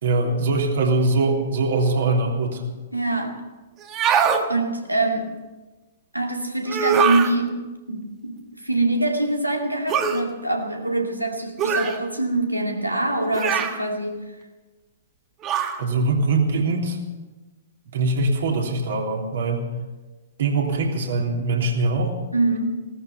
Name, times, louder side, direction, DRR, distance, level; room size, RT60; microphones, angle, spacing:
voice 1, 0.0-2.6 15.8-17.0 17.9-19.7 20.4-22.1, right 3 dB, 55° right, 0 dB, 3.1 m, -22 dB
voice 2, 2.9-3.4 4.5-5.4 6.1-14.2 22.3-22.9, right 2 dB, 90° right, 2 dB, 2.4 m, -24 dB
sound 1, 3.8-4.4 6.7-7.3 9.9-10.2 11.6-12.0 13.3-13.8 15.4-15.8, right 6 dB, 25° right, 1.3 m, -21 dB
17.5 x 13.5 x 5.8 m, 1.2 s
figure-of-eight pair, 110°, 0 cm